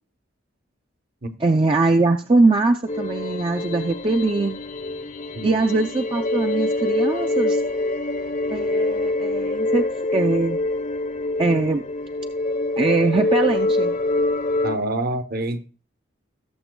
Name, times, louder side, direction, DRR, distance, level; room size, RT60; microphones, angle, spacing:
voice 1, 1.4-4.6 5.4-7.6 8.5-9.8 10.1-10.6 11.4-11.8 12.8-13.9, right 3 dB, 25° right, 0.4 m, -21 dB
sound 1, 2.9-14.8, left 2 dB, 40° left, 0.7 m, -25 dB
voice 2, 14.6-15.6, right 2 dB, 50° right, 0.8 m, -27 dB
18.0 x 7.1 x 2.2 m
head